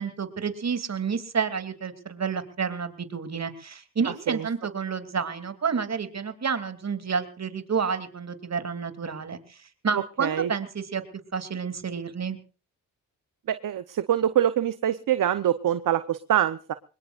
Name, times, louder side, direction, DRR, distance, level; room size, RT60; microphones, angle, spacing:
voice 1, 0.0-9.6 9.8-11.0 11.3-12.4, right 6 dB, 50° right, 10 dB, 3.0 m, -30 dB
voice 2, 9.9-10.5 13.5-16.7, right 10 dB, 65° right, 12 dB, 1.0 m, -25 dB
24.0 x 21.0 x 2.5 m, 0.36 s
cardioid pair, 70°, 34 cm